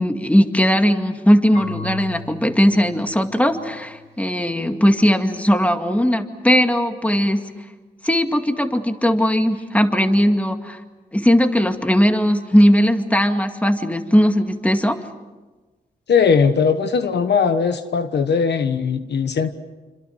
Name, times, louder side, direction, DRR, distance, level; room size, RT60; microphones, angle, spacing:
voice 1, 0.0-7.4 8.0-10.8 11.1-15.0, equal, 10° left, 6 dB, 2.2 m, -18 dB
Marimba xylophone / Wood, 1.5-4.4, left 5 dB, 45° left, 7.7 m, -38 dB
voice 2, 16.1-19.5, left 6 dB, 80° left, 9 dB, 1.3 m, -19 dB
27.5 x 26.0 x 6.4 m, 1.2 s
cardioid pair, 70°, 17 cm